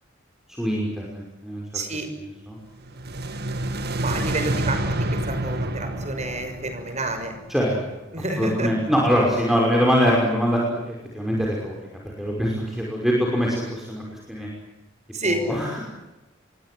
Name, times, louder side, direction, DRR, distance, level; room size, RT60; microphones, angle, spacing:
voice 1, 0.6-1.8 2.5-2.6 7.5-7.8 8.2-11.8 12.2-14.5 15.2-15.8, equal, ahead, -2 dB, 5.8 m, -23 dB
voice 2, 1.7-2.1 4.0-7.4 8.1-8.7 15.1-15.4, right 2 dB, 35° right, 8 dB, 6.3 m, -29 dB
sound 1, 2.8-8.0, right 1 dB, 55° right, 2.1 m, -28 dB
28.5 x 23.5 x 7.9 m, 1.0 s
head